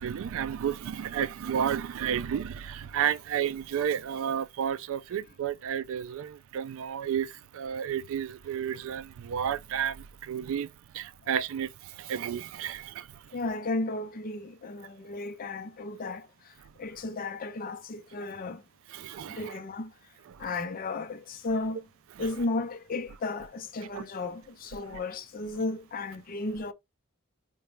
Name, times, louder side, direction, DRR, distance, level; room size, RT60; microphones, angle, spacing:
voice 1, 0.0-10.7 10.9-13.2 18.9-19.6 20.3-20.4 22.2-22.3 23.9-24.0 24.9-25.0, right 8 dB, 70° right, 0.3 m, -32 dB
voice 2, 13.3-18.6 19.2-19.9 20.4-21.9 22.2-26.7, left 2 dB, 40° left, 0.5 m, -34 dB
3.9 x 2.2 x 3.1 m
head